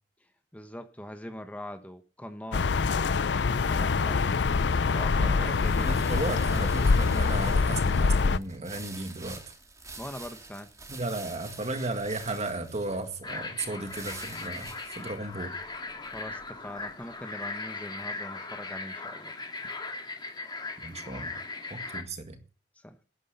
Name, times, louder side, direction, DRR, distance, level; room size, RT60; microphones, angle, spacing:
voice 1, 0.5-2.9 3.5-4.4 4.9-6.3 10.0-10.7 16.1-19.3 22.8-23.0, left 1 dB, 10° left, 1.0 m, -42 dB
sound 1, 2.5-8.4, left 4 dB, 70° left, 0.5 m, -25 dB
sound 2, 4.7-17.0, right 3 dB, 20° right, 2.4 m, -48 dB
voice 2, 5.1-9.4 10.9-15.5 20.8-21.4 21.7-22.4, right 2 dB, 40° right, 1.9 m, -35 dB
sound 3, 13.2-22.0, left 3 dB, 25° left, 2.0 m, -38 dB
11.5 x 9.9 x 6.7 m
head